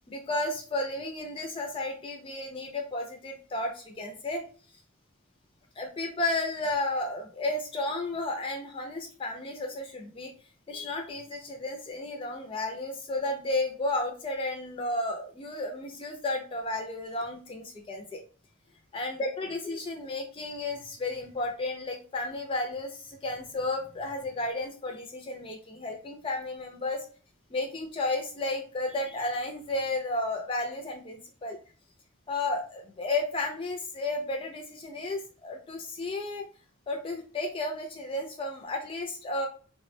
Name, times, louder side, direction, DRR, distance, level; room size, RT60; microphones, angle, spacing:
voice 1, 0.1-4.4 5.8-10.3 10.7-18.2 18.9-27.1 27.5-31.6 32.3-36.5 36.9-39.5, left 2 dB, 25° left, 3 dB, 0.3 m, -33 dB
3.5 x 2.1 x 2.5 m, 0.40 s
head